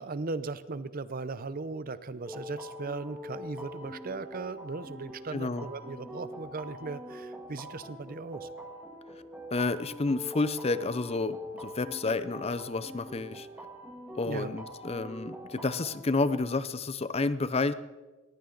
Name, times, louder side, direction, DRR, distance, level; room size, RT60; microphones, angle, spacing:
voice 1, 0.0-8.5 14.2-14.5, right 3 dB, 45° right, 15 dB, 0.6 m, -38 dB
sound 1, 2.2-16.4, equal, 10° right, 1.7 m, -44 dB
voice 2, 5.3-5.7 9.5-13.5 14.1-17.7, left 3 dB, 30° left, 14 dB, 0.6 m, -30 dB
20.5 x 15.5 x 3.9 m, 1.2 s
head